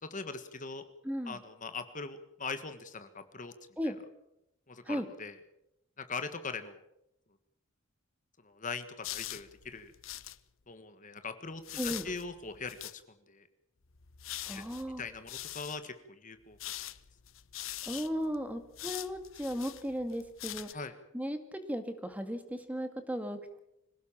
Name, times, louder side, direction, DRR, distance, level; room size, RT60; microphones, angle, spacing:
voice 1, 0.0-0.8 1.2-3.5 3.8-3.9 4.7-5.3 6.0-6.8 8.4-9.9 10.7-13.0 13.3-13.5 14.5-14.6 15.0-16.6 20.7-20.9, left 4 dB, 40° left, 9 dB, 1.6 m, -41 dB
voice 2, 1.0-1.4 3.8-4.0 4.8-5.1 11.8-12.1 14.5-15.0 17.9-20.8 21.1-23.6, equal, 5° right, 8 dB, 2.1 m, -36 dB
sound 1, 9.0-10.4 11.6-13.0 13.8-15.8 16.5-20.7, left 14 dB, 80° left, 1.0 m, -43 dB
25.5 x 17.5 x 7.4 m, 0.83 s
head